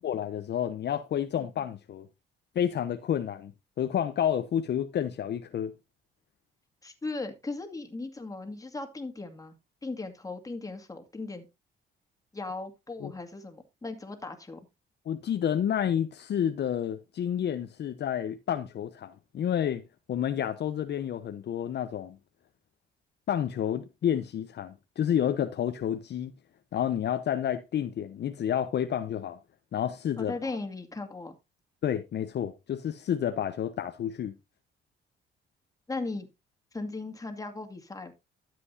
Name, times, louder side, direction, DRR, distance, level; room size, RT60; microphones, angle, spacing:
voice 1, 0.0-2.1 2.5-3.5 3.8-5.7 13.0-13.1 15.1-19.8 20.1-22.2 23.3-26.3 26.7-29.4 29.7-30.5 31.8-34.3, left 9 dB, 60° left, 0.9 m, -30 dB
voice 2, 6.8-9.5 9.8-11.5 12.3-14.7 30.2-31.4 35.9-36.3 36.7-38.1, left 3 dB, 15° left, 2.2 m, -37 dB
12.5 x 7.8 x 2.7 m
cardioid pair, 90°, 20 cm